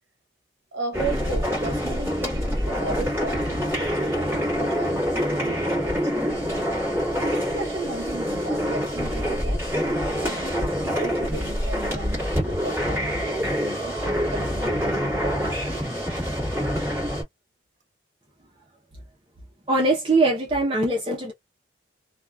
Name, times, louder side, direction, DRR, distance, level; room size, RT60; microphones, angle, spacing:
voice 1, 0.7-6.3 7.1-9.6 10.1-15.8, right 3 dB, 75° right, 0.8 m, -36 dB
sound 1, 0.9-17.2, equal, 10° right, 1.4 m, -26 dB
voice 2, 19.7-21.3, right 2 dB, 30° right, 0.7 m, -21 dB
2.8 x 2.3 x 2.2 m
head